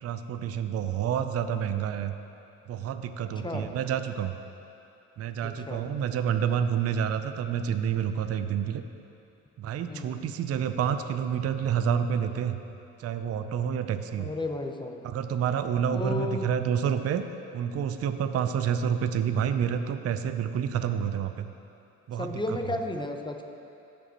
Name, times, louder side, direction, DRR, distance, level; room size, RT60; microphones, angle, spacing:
voice 1, 0.0-2.1 2.7-4.4 5.2-8.8 9.6-12.6 13.0-14.3 15.0-17.2 17.5-21.5 22.1-22.4, right 8 dB, 40° right, 9 dB, 0.6 m, -28 dB
voice 2, 5.4-5.8 9.9-10.3 14.2-15.0 15.9-16.5 22.2-23.4, left 2 dB, 10° left, 4 dB, 0.9 m, -33 dB
15.0 x 5.2 x 3.0 m, 2.7 s
hypercardioid pair, 60°, 40 cm